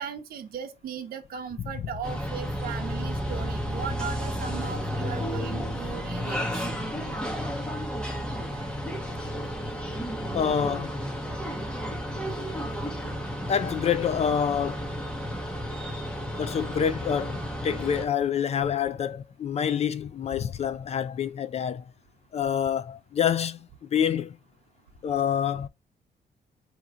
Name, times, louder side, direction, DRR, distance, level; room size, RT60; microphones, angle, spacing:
voice 1, 0.0-6.6 13.0-13.1, right 7 dB, 65° right, 0.8 m, -37 dB
sound 1, 2.0-18.0, equal, 5° left, 1.0 m, -32 dB
voice 2, 10.3-10.9 13.5-14.8 16.4-21.8 22.3-24.4 25.0-25.7, left 8 dB, 40° left, 0.4 m, -27 dB
4.6 x 2.9 x 3.6 m
wide cardioid pair, 165°, 17 cm